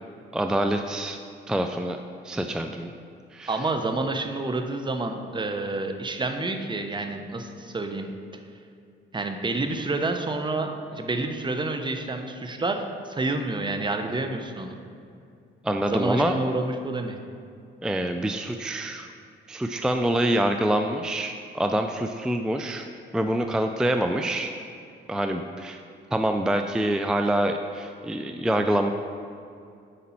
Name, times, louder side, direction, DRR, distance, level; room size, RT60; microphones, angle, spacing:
voice 1, 0.3-1.2 1.5-2.0 2.2-2.9 3.3-3.6 15.6-16.4 17.8-19.1 19.5-22.9 23.1-24.5 25.1-25.8 26.1-28.9, right 1 dB, 5° right, 5 dB, 0.3 m, -26 dB
voice 2, 3.5-8.1 9.1-14.8 15.9-17.2, right 2 dB, 25° right, 6 dB, 0.8 m, -29 dB
8.4 x 5.1 x 4.4 m, 2.4 s
cardioid pair, 90°, 20 cm